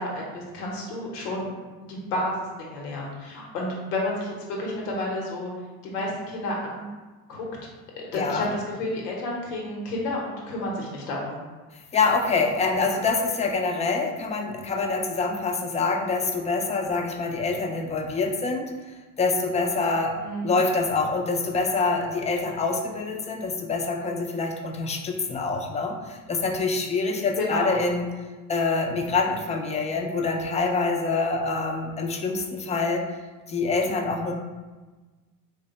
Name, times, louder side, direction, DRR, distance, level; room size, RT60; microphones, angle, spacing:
voice 1, 0.0-1.5 1.9-5.5 5.8-6.8 7.3-7.5 8.0-11.4 12.7-12.8 20.2-20.5 27.4-27.8, left 1 dB, 90° left, -2 dB, 0.9 m, -30 dB
voice 2, 8.1-8.5 11.9-18.7 19.2-20.2 20.4-28.1 28.5-33.0 33.5-34.3, left 3 dB, 15° left, 2 dB, 0.3 m, -25 dB
3.3 x 2.2 x 3.9 m, 1.3 s
hypercardioid pair, 80°, 46 cm